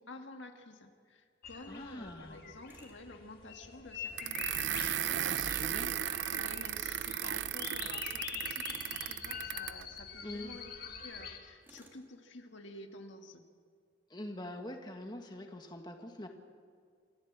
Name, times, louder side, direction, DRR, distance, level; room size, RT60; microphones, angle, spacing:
voice 1, 0.0-4.8 5.7-10.7 11.0-13.4, left 2 dB, 80° left, 5 dB, 1.8 m, -51 dB
sound 1, 1.4-11.4, left 6 dB, 50° left, 2.3 m, -45 dB
voice 2, 1.7-2.4 5.3-5.9 10.2-10.6 14.1-16.3, left 1 dB, 25° left, 4 dB, 1.7 m, -44 dB
Tools, 2.7-3.0 5.7-6.1 8.6-9.1 11.6-12.0, right 1 dB, 10° right, 2.7 m, -58 dB
sound 2, 4.2-9.8, right 11 dB, 75° right, 0.5 m, -36 dB
28.0 x 14.5 x 7.4 m, 2.1 s
head